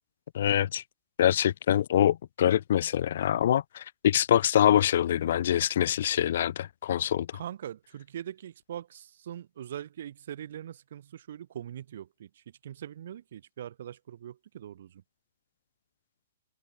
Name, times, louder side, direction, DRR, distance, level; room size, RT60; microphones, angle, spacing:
voice 1, 0.3-0.8 1.2-7.3, left 10 dB, 60° left, 0.6 m, -24 dB
voice 2, 7.3-12.3 12.6-15.0, right 10 dB, 60° right, 5.7 m, -42 dB
hypercardioid pair, 145°, 0 cm